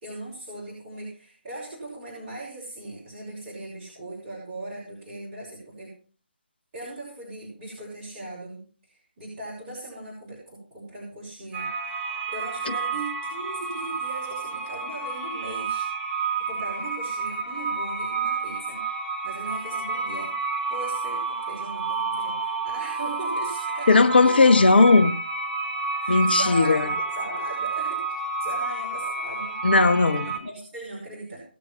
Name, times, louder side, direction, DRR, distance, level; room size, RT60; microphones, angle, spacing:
voice 1, 0.0-5.9 6.7-11.7 12.3-15.9 16.4-18.8 19.2-23.9 24.2-24.4 26.0-29.6 30.2-31.4, right 1 dB, 25° right, 5.2 m, -39 dB
sound 1, 11.5-30.4, right 4 dB, 10° right, 1.8 m, -30 dB
voice 2, 23.9-25.2 26.1-26.9 29.6-30.3, left 3 dB, 55° left, 0.8 m, -17 dB
18.0 x 7.1 x 5.6 m
figure-of-eight pair, 145°, 6 cm